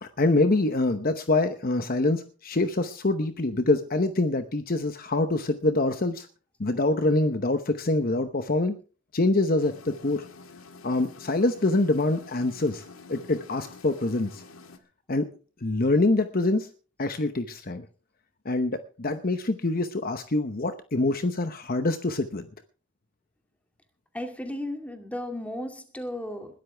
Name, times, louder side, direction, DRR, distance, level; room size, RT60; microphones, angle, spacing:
voice 1, 0.0-6.3 6.6-8.8 9.1-10.3 10.8-14.4 15.1-15.3 15.6-16.7 17.0-17.8 18.4-22.5, left 2 dB, 45° left, 9 dB, 0.9 m, -25 dB
sound 1, 9.6-14.8, left 3 dB, 90° left, 1.8 m, -48 dB
voice 2, 24.1-26.5, left 1 dB, 5° left, 4 dB, 2.4 m, -34 dB
21.0 x 13.0 x 3.4 m, 0.37 s
head